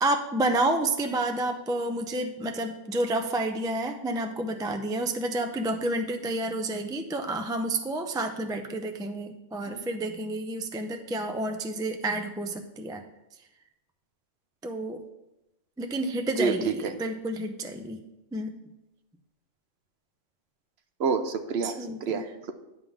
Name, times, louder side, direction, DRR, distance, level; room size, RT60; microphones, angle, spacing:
voice 1, 0.0-13.0 14.6-15.0 15.8-18.0 18.3-18.6 21.6-22.2, right 1 dB, 5° right, 5 dB, 0.3 m, -30 dB
voice 2, 16.4-16.9 21.0-21.8 22.0-22.5, right 5 dB, 60° right, 8 dB, 0.9 m, -28 dB
10.5 x 3.8 x 7.1 m, 0.95 s
omnidirectional pair, 1.3 m